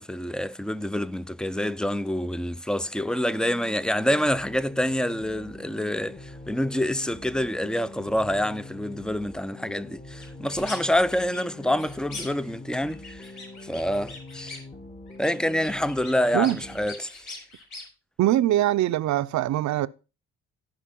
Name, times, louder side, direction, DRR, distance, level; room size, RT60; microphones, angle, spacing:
voice 1, 0.0-13.3 13.6-14.6 15.2-17.3, left 1 dB, 5° left, 0.4 m, -27 dB
sound 1, 3.3-16.9, left 2 dB, 20° left, 1.1 m, -44 dB
sound 2, 10.2-10.8 11.1-12.5 12.8-14.7 15.1-17.8, left 3 dB, 75° left, 4.9 m, -42 dB
voice 2, 18.2-19.9, right 13 dB, 70° right, 0.6 m, -22 dB
15.0 x 5.1 x 3.7 m
cardioid pair, 90°, 30 cm